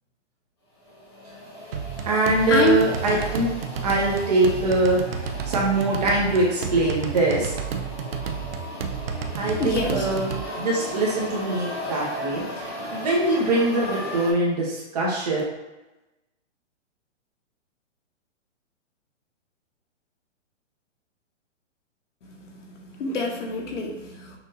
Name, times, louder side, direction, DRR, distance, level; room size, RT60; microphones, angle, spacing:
sound 1, 0.8-14.3, left 1 dB, 20° left, 0.7 m, -36 dB
sound 2, 1.7-10.4, right 6 dB, 50° right, 0.4 m, -31 dB
voice 1, 2.0-3.5 3.8-5.0 5.4-7.6 9.3-15.4, right 2 dB, 30° right, -4 dB, 0.9 m, -23 dB
voice 2, 9.3-10.1 22.5-24.4, left 2 dB, 70° left, 1 dB, 1.1 m, -26 dB
6.0 x 2.6 x 2.6 m, 1.0 s
hypercardioid pair, 175°, 37 cm